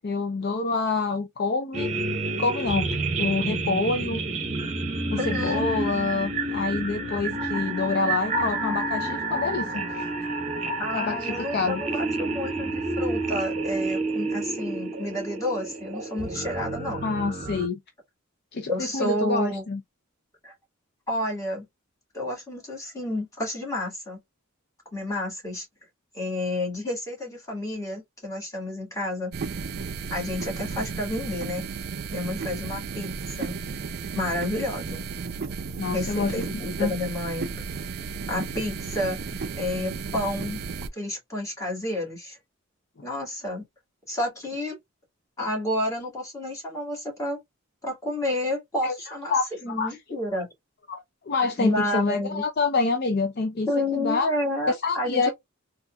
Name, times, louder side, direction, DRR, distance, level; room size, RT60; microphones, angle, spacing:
voice 1, 0.0-1.9 2.4-4.2 5.1-9.9 10.9-11.8 17.0-17.8 18.5-19.8 35.8-36.9 48.8-49.0 49.3-50.0 50.9-54.3 54.7-55.3, left 4 dB, 50° left, 0.5 m, -27 dB
sound 1, 1.7-17.7, right 2 dB, 35° right, 0.8 m, -29 dB
voice 2, 5.2-5.6 10.8-17.1 18.7-19.6 20.4-20.5 21.1-21.6 22.1-24.2 24.9-25.7 26.1-29.3 30.1-31.7 32.1-33.6 34.2-35.0 35.9-37.5 38.3-39.2 39.6-40.6 40.9-42.4 43.0-43.6 44.1-44.8 45.4-47.4 47.8-49.3 49.6-50.5 51.6-52.4 53.7-55.3, left 1 dB, 15° left, 1.9 m, -30 dB
sound 2, 29.3-40.9, right 5 dB, 50° right, 0.4 m, -34 dB
4.0 x 2.4 x 2.3 m
head